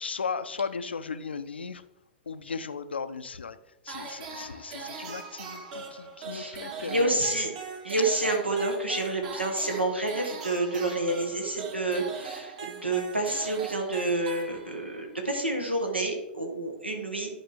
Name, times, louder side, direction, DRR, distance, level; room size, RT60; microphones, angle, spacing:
voice 1, 0.0-1.8 2.3-3.6 3.8-7.2, left 5 dB, 75° left, 12 dB, 0.5 m, -36 dB
sound 1, 3.9-15.0, right 5 dB, 50° right, 1.8 m, -40 dB
voice 2, 6.3-7.5 7.8-17.3, right 2 dB, 90° right, 2 dB, 1.6 m, -29 dB
11.0 x 5.0 x 3.7 m, 0.91 s
figure-of-eight pair, 100°, 6 cm